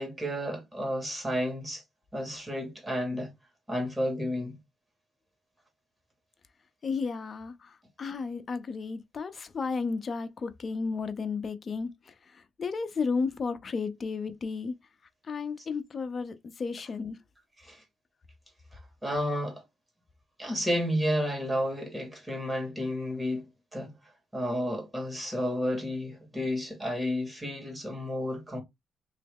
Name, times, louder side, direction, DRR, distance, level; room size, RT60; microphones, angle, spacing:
voice 1, 0.0-1.8 2.1-3.3 3.7-4.6 17.6-17.8 19.0-19.6 20.4-23.9 24.3-28.6, equal, 15° right, 1.8 m, -31 dB
voice 2, 6.8-7.7 8.0-14.7 15.2-17.2, left 4 dB, 40° left, 0.6 m, -33 dB
3.1 x 2.7 x 3.5 m
cardioid pair, 90°, 0 cm